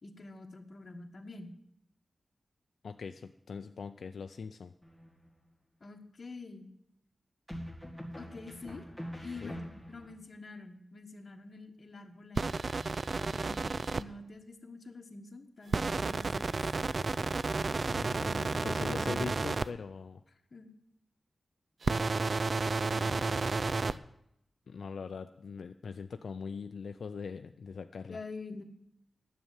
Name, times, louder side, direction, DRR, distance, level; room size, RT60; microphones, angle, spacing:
voice 1, 0.0-1.5 5.8-6.7 8.2-8.9 9.2-12.5 13.2-16.6 18.2-19.2 20.5-20.7 28.1-28.6, left 2 dB, 45° left, 5 dB, 1.4 m, -46 dB
voice 2, 2.8-4.7 9.4-9.6 17.9-20.2 22.9-23.5 24.7-28.2, left 5 dB, 80° left, 8 dB, 0.4 m, -42 dB
sound 1, 4.8-5.4 7.5-10.1, equal, 10° right, 2.3 m, -44 dB
sound 2, 12.4-14.0 15.7-19.7 21.8-23.9, right 3 dB, 45° right, 0.4 m, -31 dB
10.0 x 7.7 x 9.0 m, 0.77 s
wide cardioid pair, 125°, 0 cm